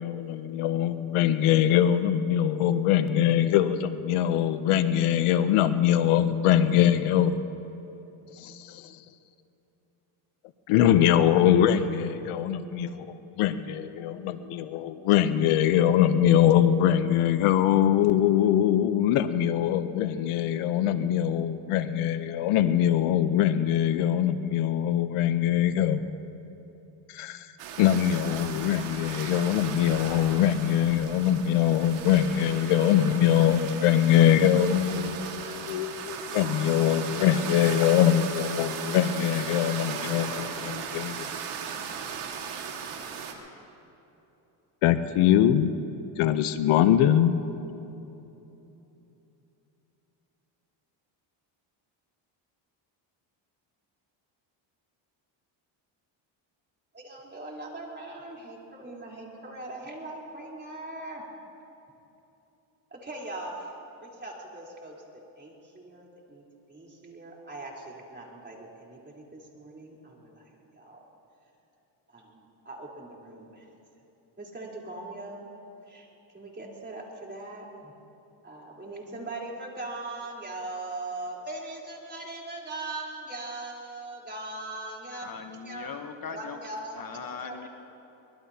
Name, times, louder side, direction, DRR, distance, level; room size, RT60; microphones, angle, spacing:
voice 1, 0.0-7.4 8.3-9.0 10.7-26.0 27.1-27.5 27.8-41.3 44.8-45.7 46.2-47.4, left 10 dB, 85° left, 0.9 m, -23 dB
sound 1, 27.6-43.3, right 7 dB, 85° right, 2.0 m, -37 dB
voice 2, 56.9-61.2 62.9-63.7 64.0-65.0 65.4-66.4 66.7-71.0 72.1-73.7 74.4-75.5 75.9-76.1 76.3-77.9 78.4-85.3 85.5-85.9 86.3-87.6, right 2 dB, 20° right, 3.9 m, -40 dB
voice 3, 85.2-86.6 86.9-87.7, left 6 dB, 45° left, 1.1 m, -39 dB
24.0 x 21.0 x 2.9 m
cardioid pair, 95°, 49 cm